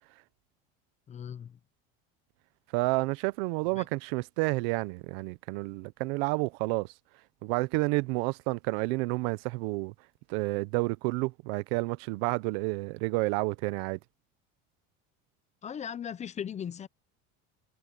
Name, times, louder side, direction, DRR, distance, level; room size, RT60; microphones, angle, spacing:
voice 1, 1.1-1.6 3.7-3.9 15.6-16.9, left 8 dB, 25° left, 0.6 m, -38 dB
voice 2, 2.7-6.9 7.4-9.9 10.3-14.0, right 24 dB, 90° right, 0.8 m, -30 dB
cardioid pair, 145°, 29 cm